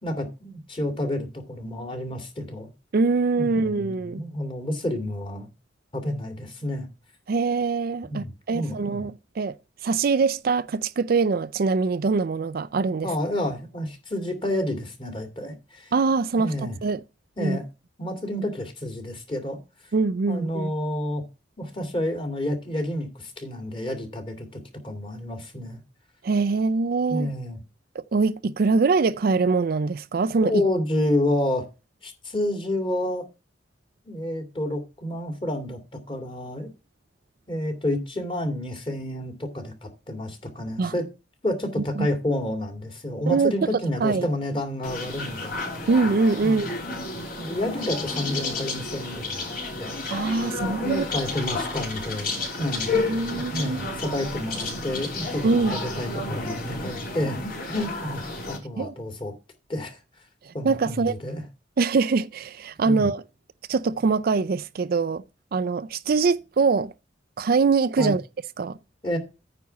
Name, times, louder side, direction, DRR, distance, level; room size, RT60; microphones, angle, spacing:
voice 1, 0.0-2.7 3.4-5.5 5.9-6.9 8.1-9.1 13.0-15.9 16.4-16.8 17.4-17.6 18.0-19.6 20.3-21.2 21.6-25.8 27.1-27.6 30.4-31.7 32.0-33.3 34.0-35.8 36.1-36.7 37.5-41.1 41.4-45.6 46.4-46.7 47.4-49.5 49.7-50.0 50.8-52.9 53.3-59.3 59.7-60.0 60.5-61.4 62.8-63.1 68.0-68.2 69.0-69.2, left 1 dB, 30° left, 2.5 m, -29 dB
voice 2, 2.9-4.2 7.3-9.5 9.8-13.1 15.9-17.0 17.4-17.6 19.9-20.7 26.2-27.3 27.9-30.6 40.8-40.9 42.0-42.1 43.3-43.7 44.0-44.3 45.9-46.7 50.1-51.1 52.9-53.9 55.4-55.8 58.8-58.9 60.4-61.1 61.8-63.2 63.7-65.2 65.5-66.9 67.4-68.2 68.6-68.8, right 4 dB, 55° right, 0.4 m, -23 dB
sound 1, 44.8-58.6, left 3 dB, 50° left, 3.3 m, -31 dB
9.4 x 4.2 x 7.0 m
head